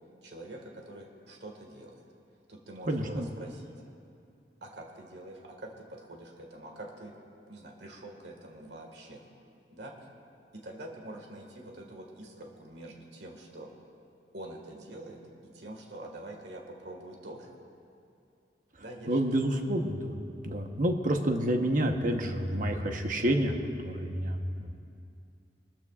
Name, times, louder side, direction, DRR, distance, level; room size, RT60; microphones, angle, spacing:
voice 1, 0.2-2.0 2.5-3.8 4.6-7.2 7.5-9.2 9.7-10.0 10.5-13.7 14.3-17.6 18.8-19.6, right 1 dB, 75° right, 1 dB, 1.8 m, -45 dB
voice 2, 2.9-3.3 19.1-23.5 23.8-24.7, right 1 dB, 50° right, 4 dB, 1.1 m, -29 dB
23.5 x 13.5 x 2.5 m, 2.5 s
head